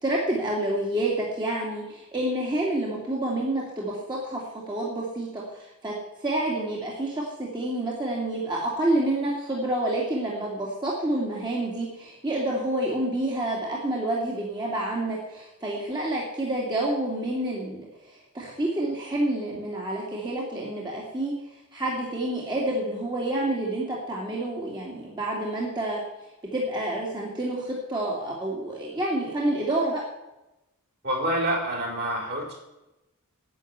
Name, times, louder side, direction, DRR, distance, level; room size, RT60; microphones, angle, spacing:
voice 1, 0.0-5.9 6.2-21.3 21.7-26.0 26.5-30.0, right 1 dB, 20° right, -4 dB, 2.6 m, -28 dB
voice 2, 31.0-32.5, right 1 dB, 50° right, -2 dB, 4.9 m, -27 dB
10.0 x 8.5 x 9.6 m, 0.97 s
head